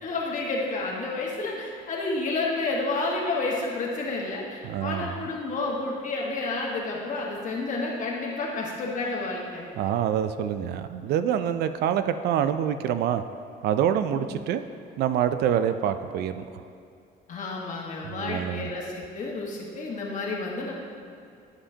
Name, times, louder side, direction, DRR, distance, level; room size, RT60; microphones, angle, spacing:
voice 1, 0.0-9.7 14.1-14.3 17.3-20.7, left 3 dB, 50° left, -2 dB, 1.5 m, -30 dB
voice 2, 4.6-5.2 9.8-13.2 13.6-14.6 15.0-16.5 18.0-18.7, right 9 dB, 75° right, 10 dB, 0.4 m, -26 dB
11.0 x 5.1 x 2.8 m, 2.5 s
cardioid pair, 110°, 17 cm